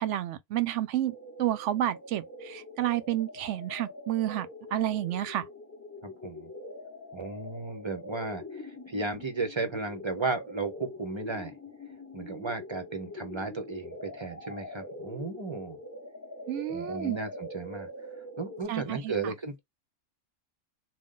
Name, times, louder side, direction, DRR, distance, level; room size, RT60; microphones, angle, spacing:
voice 1, 0.0-5.5 16.5-17.2 18.7-19.3, right 12 dB, 70° right, 0.8 m, -30 dB
sound 1, 1.0-18.6, left 1 dB, 15° left, 0.7 m, -44 dB
voice 2, 6.0-6.5 7.1-11.5 12.1-15.8 16.7-17.9 18.4-19.6, right 3 dB, 30° right, 0.6 m, -35 dB
3.8 x 2.3 x 3.7 m
omnidirectional pair, 1.4 m